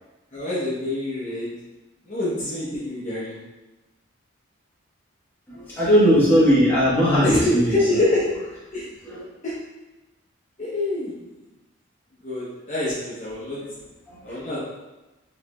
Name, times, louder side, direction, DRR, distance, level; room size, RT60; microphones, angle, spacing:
voice 1, 0.3-1.5 2.1-3.3 7.2-8.3 8.7-8.9 9.4-9.5 10.6-11.1 12.2-13.6 14.2-14.6, left 1 dB, 35° left, -9 dB, 0.8 m, -25 dB
voice 2, 5.5-7.7 9.0-9.2 14.1-14.6, equal, 10° left, -10 dB, 1.2 m, -19 dB
4.6 x 2.9 x 2.3 m, 1.1 s
head